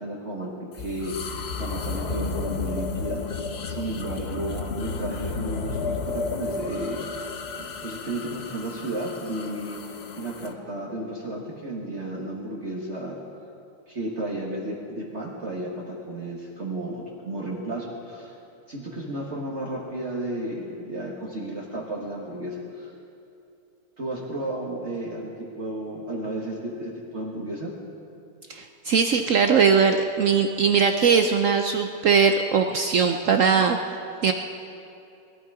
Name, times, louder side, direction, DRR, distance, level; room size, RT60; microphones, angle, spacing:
voice 1, 0.0-3.2 3.6-7.3 7.6-9.8 10.1-13.2 13.9-18.4 18.7-22.9 24.0-27.7, right 1 dB, 40° right, -4 dB, 1.8 m, -33 dB
sound 1, 0.7-10.5, left 4 dB, 50° left, 0.7 m, -32 dB
voice 2, 28.5-33.8 34.2-34.3, right 6 dB, 65° right, 5 dB, 0.8 m, -20 dB
21.0 x 13.0 x 4.9 m, 2.7 s
omnidirectional pair, 1.9 m